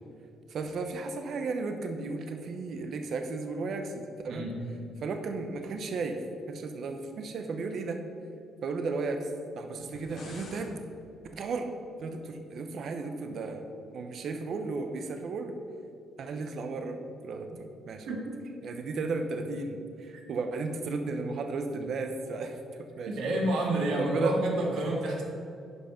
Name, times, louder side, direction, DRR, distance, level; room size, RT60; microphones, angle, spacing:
voice 1, 0.5-4.5 5.0-6.2 6.5-8.0 8.6-9.3 9.6-10.8 11.3-11.7 12.0-15.6 16.2-18.1 18.6-23.2 24.0-24.4 25.2-25.3, right 3 dB, 65° right, 5 dB, 0.8 m, -34 dB
voice 2, 4.3-4.7 18.1-18.4 20.1-20.2 23.1-25.2, right 1 dB, 80° right, -1 dB, 1.8 m, -29 dB
sound 1, 9.8-10.7, left 2 dB, 70° left, 1.6 m, -46 dB
9.9 x 5.5 x 5.1 m, 2.6 s
cardioid pair, 90°, 0 cm